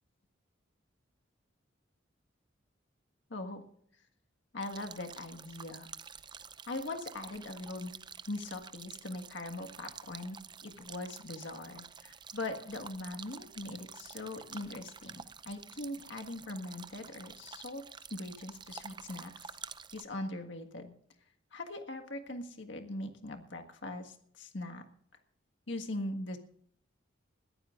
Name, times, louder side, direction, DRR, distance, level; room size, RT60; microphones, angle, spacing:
voice 1, 3.3-3.6 4.5-5.9 6.7-7.9 8.3-17.8 18.1-19.5 19.9-20.9 21.5-24.8 25.7-26.4, left 2 dB, 70° left, 4 dB, 1.7 m, -41 dB
sound 1, 4.6-20.0, right 6 dB, 25° right, 0.5 m, -49 dB
21.5 x 14.0 x 2.5 m, 0.64 s
head